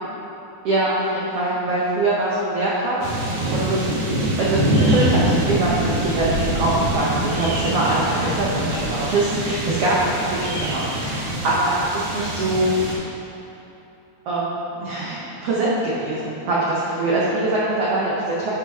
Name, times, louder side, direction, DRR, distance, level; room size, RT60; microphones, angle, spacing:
voice 1, 0.6-3.8 4.4-12.7 14.2-14.5 14.8-15.2 15.4-18.5, right 2 dB, 70° right, -7 dB, 1.4 m, -23 dB
sound 1, 3.0-12.9, right 1 dB, 85° right, 3.3 m, -24 dB
11.0 x 5.1 x 4.2 m, 2.9 s
omnidirectional pair, 4.2 m